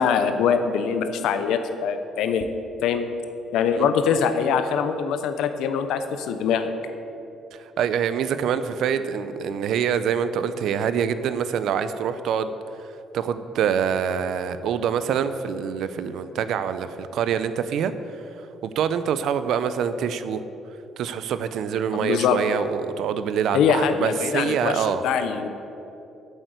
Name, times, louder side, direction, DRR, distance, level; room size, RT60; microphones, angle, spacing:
voice 1, 0.0-2.5 2.8-3.1 3.5-6.7 21.9-22.4 23.5-25.5, left 7 dB, 80° left, 9 dB, 0.7 m, -23 dB
voice 2, 7.5-12.5 13.1-17.9 18.6-20.4 21.0-25.0, right 7 dB, 60° right, 12 dB, 0.6 m, -25 dB
8.8 x 7.9 x 8.1 m, 2.9 s
cardioid pair, 165°, 0 cm